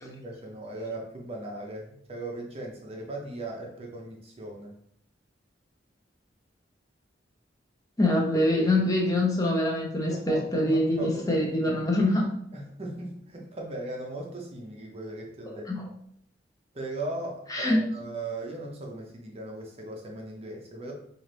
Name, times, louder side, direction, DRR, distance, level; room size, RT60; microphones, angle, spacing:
voice 1, 0.0-4.7 10.0-11.7 12.5-15.7 16.7-20.9, right 2 dB, 35° right, 1 dB, 0.6 m, -38 dB
voice 2, 8.0-12.3 15.7-15.8 17.5-17.8, left 1 dB, 20° left, -1 dB, 0.7 m, -24 dB
4.1 x 2.5 x 3.3 m, 0.68 s
head